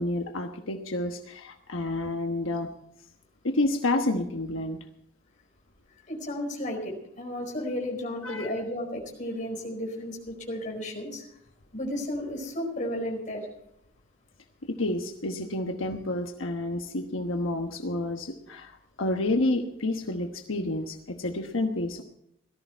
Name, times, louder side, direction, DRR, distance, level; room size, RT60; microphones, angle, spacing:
voice 1, 0.0-2.7 3.4-4.8 8.2-8.5 14.7-22.0, left 2 dB, 90° left, 4 dB, 1.2 m, -29 dB
voice 2, 6.1-11.3 11.7-13.5, left 1 dB, 40° left, 1 dB, 4.7 m, -33 dB
18.0 x 13.5 x 4.5 m, 0.76 s
head